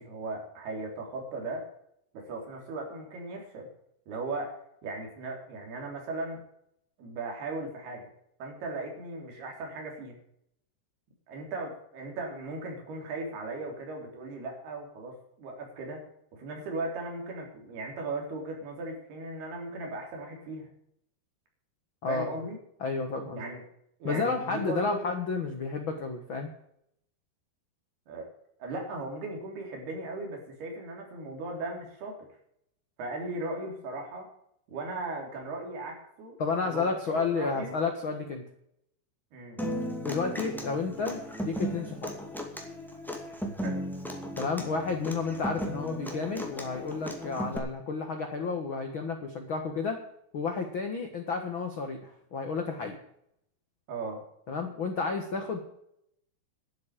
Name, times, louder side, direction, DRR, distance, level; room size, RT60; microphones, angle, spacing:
voice 1, 0.0-1.7 2.1-3.7 4.1-4.6 4.8-6.4 7.0-8.1 8.4-10.2 11.3-16.0 16.3-20.7 22.1-22.6 23.3-23.6 24.0-25.1 28.1-28.3 28.6-32.2 33.0-34.3 34.7-36.4 36.6-37.8 39.3-39.7 43.6-43.9 53.9-54.2, right 2 dB, 75° right, 1 dB, 5.4 m, -37 dB
voice 2, 22.0-22.3 22.8-23.4 24.0-26.5 36.4-38.4 40.0-42.1 44.4-50.0 50.3-53.0 54.5-55.6, left 4 dB, 60° left, 4 dB, 1.3 m, -31 dB
Human voice / Acoustic guitar, 39.6-47.6, equal, ahead, 1.2 m, -36 dB
12.0 x 8.2 x 9.0 m, 0.73 s
omnidirectional pair, 4.6 m